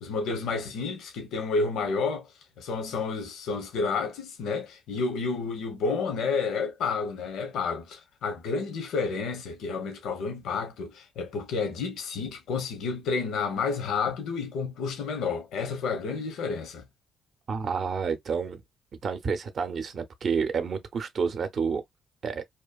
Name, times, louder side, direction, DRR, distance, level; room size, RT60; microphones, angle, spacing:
voice 1, 0.0-2.3 2.6-16.8, left 4 dB, 80° left, 0.8 m, -30 dB
voice 2, 17.5-18.6 19.0-21.8 22.2-22.4, right 5 dB, 50° right, 0.5 m, -29 dB
2.8 x 2.3 x 2.2 m
cardioid pair, 90°, 0 cm